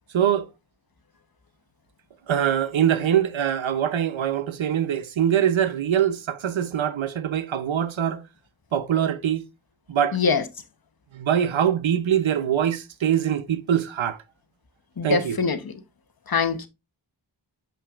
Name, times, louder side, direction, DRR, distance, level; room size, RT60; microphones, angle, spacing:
voice 1, 0.1-0.5 2.3-8.2 8.7-9.4 9.9-10.2 11.1-14.2 15.0-15.4, right 9 dB, 85° right, 0.7 m, -23 dB
voice 2, 10.1-10.4 15.0-15.7 16.3-16.7, left 5 dB, 50° left, 1.0 m, -23 dB
7.3 x 5.6 x 2.4 m
wide cardioid pair, 60°, 46 cm